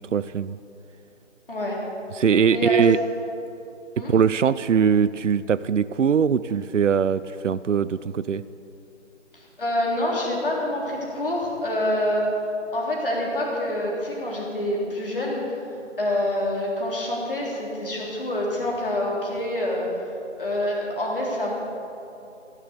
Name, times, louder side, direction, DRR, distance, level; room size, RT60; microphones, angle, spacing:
voice 1, 0.1-0.6 2.2-3.0 4.0-8.4, right 7 dB, 80° right, 16 dB, 0.5 m, -21 dB
voice 2, 1.5-1.9 2.5-2.9 4.0-4.1 9.3-12.4 12.7-15.5 16.0-19.9 20.4-21.5, left 1 dB, 45° left, -3 dB, 3.5 m, -26 dB
16.0 x 7.3 x 8.4 m, 2.9 s
figure-of-eight pair, 160°, 37 cm